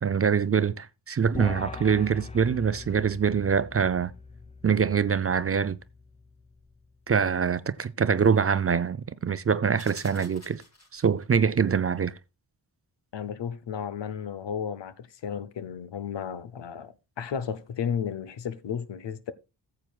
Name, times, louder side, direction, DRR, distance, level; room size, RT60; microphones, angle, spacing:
voice 1, 0.0-4.1 4.6-5.8 7.1-10.6 10.9-12.1, right 6 dB, 35° right, 0.5 m, -24 dB
sound 1, 1.3-6.9, left 4 dB, 15° left, 0.6 m, -42 dB
sound 2, 9.8-11.2, left 1 dB, 35° left, 3.6 m, -50 dB
voice 2, 13.1-19.3, left 7 dB, 75° left, 0.8 m, -33 dB
14.0 x 7.5 x 2.4 m
cardioid pair, 50°, 44 cm